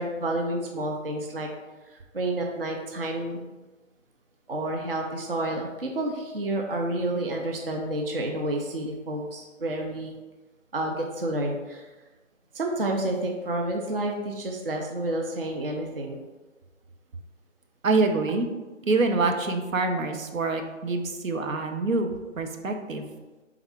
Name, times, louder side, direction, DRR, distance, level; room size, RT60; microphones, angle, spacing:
voice 1, 0.0-1.5 2.1-3.5 4.5-10.1 10.7-11.8 12.5-16.2, right 1 dB, 50° right, 1 dB, 0.5 m, -29 dB
voice 2, 17.8-18.5 18.8-23.1, right 3 dB, 80° right, 5 dB, 0.7 m, -26 dB
3.6 x 3.5 x 3.4 m, 1.2 s
figure-of-eight pair, 170°, 39 cm